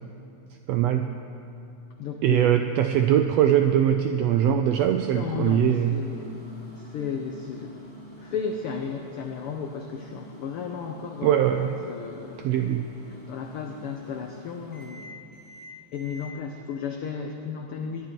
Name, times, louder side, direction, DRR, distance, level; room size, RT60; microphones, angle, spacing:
voice 1, 0.7-1.1 2.2-6.0 11.2-11.8 12.4-12.9, right 10 dB, 85° right, 6 dB, 1.4 m, -22 dB
voice 2, 2.0-2.5 5.1-6.3 6.7-7.8 8.2-11.4 11.8-12.5 13.3-15.1 15.9-18.1, left 6 dB, 85° left, 3 dB, 1.2 m, -34 dB
Microwave oven, 4.7-16.3, equal, 5° left, 3.0 m, -47 dB
19.0 x 11.0 x 4.6 m, 2.8 s
omnidirectional pair, 3.4 m